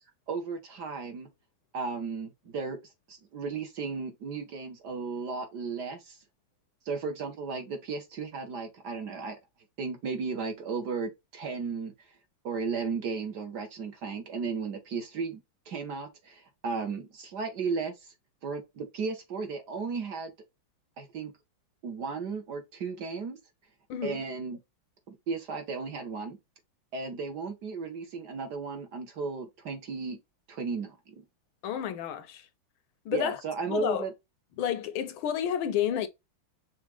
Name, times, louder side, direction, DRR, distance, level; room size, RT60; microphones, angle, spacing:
voice 1, 0.3-1.3 1.7-2.8 3.1-6.2 6.8-9.4 9.8-11.9 12.4-15.4 15.7-17.9 18.4-20.3 21.0-21.3 21.8-23.4 24.0-24.6 25.1-26.4 26.9-30.2 30.5-31.2 33.1-34.1, right 4 dB, 55° right, 1.6 m, -35 dB
voice 2, 23.9-24.2 31.6-32.5 33.0-33.4 33.7-34.1 34.6-36.1, left 9 dB, 75° left, 1.5 m, -30 dB
6.1 x 2.5 x 3.3 m
omnidirectional pair, 2.4 m